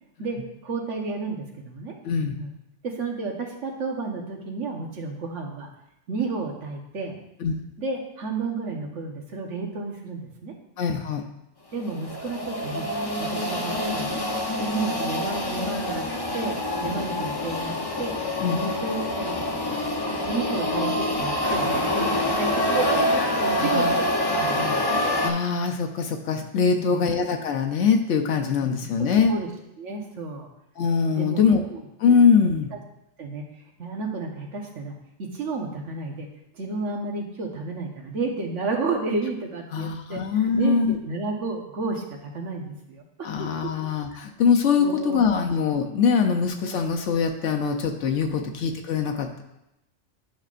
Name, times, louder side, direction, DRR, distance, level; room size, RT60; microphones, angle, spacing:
voice 1, 0.2-1.9 2.3-2.5 2.8-5.7 6.1-7.2 7.8-10.5 11.7-12.9 13.2-14.2 14.6-16.1 16.3-18.1 18.5-19.4 20.2-24.1 24.4-24.7 26.7-27.0 29.3-29.5 29.8-30.5 31.1-31.4 31.7-31.8 33.2-33.4 33.8-36.3 36.5-43.0 43.4-43.5 44.8-45.2, right 3 dB, 85° right, 1 dB, 1.4 m, -31 dB
voice 2, 2.0-2.4 7.4-7.5 10.8-11.2 18.4-18.6 23.5-23.9 24.5-29.3 30.8-31.6 32.0-32.7 39.7-41.0 43.2-49.4, left 6 dB, 80° left, 3 dB, 1.0 m, -23 dB
sound 1, 11.8-25.3, left 1 dB, 25° left, 0.6 m, -26 dB
10.5 x 5.5 x 2.5 m, 0.88 s
omnidirectional pair, 1.2 m